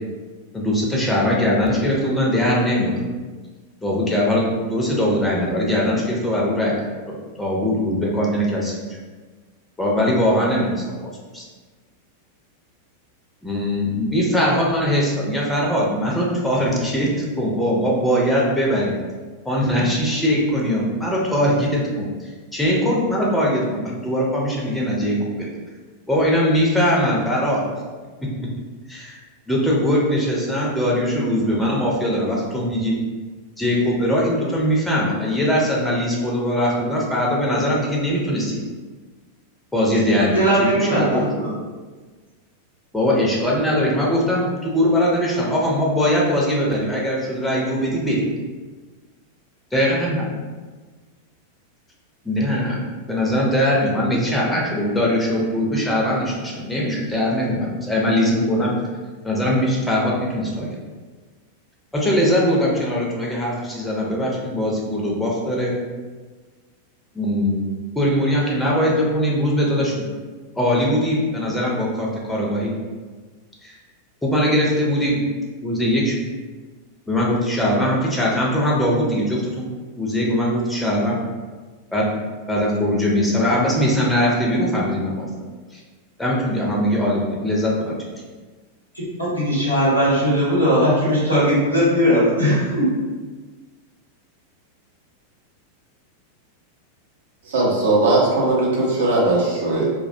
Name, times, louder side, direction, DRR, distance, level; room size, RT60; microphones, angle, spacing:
voice 1, 0.5-3.0 3.8-4.4 4.7-8.8 9.8-11.4 13.4-17.1 17.4-18.9 19.5-25.5 26.1-27.6 28.2-28.5 28.9-29.2 29.5-32.9 33.6-38.6 39.7-40.4 40.7-41.3 42.9-48.2 49.7-50.3 52.2-52.8 53.1-58.7 59.2-60.7 61.9-65.7 67.1-67.6 68.0-69.9 70.6-72.7 73.6-73.7 74.2-75.2 75.6-76.1 77.1-79.7 80.0-81.2 81.9-82.1 82.5-85.3 85.7-85.8 86.2-88.0, equal, 5° left, -4 dB, 0.5 m, -21 dB
voice 2, 40.2-41.5 89.2-92.9, equal, 90° right, -9 dB, 1.0 m, -18 dB
voice 3, 97.5-99.9, right 2 dB, 60° right, -4 dB, 0.7 m, -19 dB
2.3 x 2.1 x 2.6 m, 1.4 s
figure-of-eight pair, 90°, 0 cm